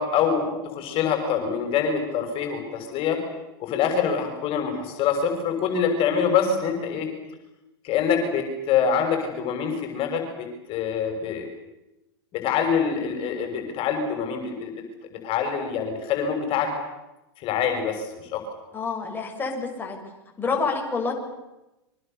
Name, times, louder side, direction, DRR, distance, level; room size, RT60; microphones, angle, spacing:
voice 1, 0.0-3.2 3.6-7.1 7.8-11.5 12.3-14.8 15.1-16.7 17.4-18.5, left 7 dB, 45° left, 4 dB, 6.5 m, -25 dB
voice 2, 18.7-20.0 20.4-21.1, left 4 dB, 15° left, 0 dB, 6.7 m, -27 dB
29.5 x 24.5 x 7.0 m, 0.98 s
hypercardioid pair, 105°, 13 cm